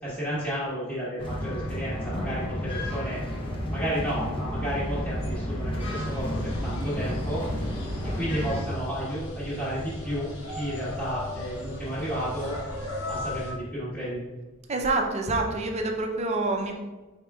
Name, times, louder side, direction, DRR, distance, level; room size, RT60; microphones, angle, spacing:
voice 1, 0.0-3.2 3.7-7.4 8.0-12.5 13.1-14.2, equal, 5° left, -13 dB, 1.2 m, -32 dB
sound 1, 1.2-8.6, equal, 25° left, 0.7 m, -31 dB
sound 2, 5.9-13.5, left 1 dB, 90° left, 0.9 m, -37 dB
voice 2, 14.7-16.7, right 2 dB, 30° right, 2 dB, 0.5 m, -27 dB
5.2 x 4.2 x 2.3 m, 1.2 s
head